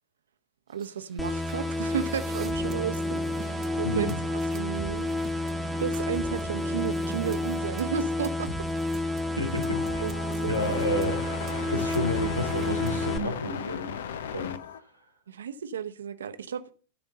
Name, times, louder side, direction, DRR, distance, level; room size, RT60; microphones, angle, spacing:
voice 1, 0.7-4.1 4.5-5.2 5.8-8.7 10.0-10.1 10.4-10.5 15.3-16.6, right 8 dB, 65° right, 0.9 m, -33 dB
sound 1, 0.8-0.9 1.2-13.1, right 8 dB, 25° right, 0.7 m, -41 dB
sound 2, 1.2-13.2, left 2 dB, 5° left, 1.4 m, -30 dB
voice 2, 3.8-4.2 9.4-10.0 10.5-11.2 11.7-14.0 14.3-14.6, left 1 dB, 85° left, 2.0 m, -30 dB
sound 3, 9.6-14.8, left 8 dB, 60° left, 0.7 m, -37 dB
13.0 x 4.5 x 6.5 m
figure-of-eight pair, 90°, 0 cm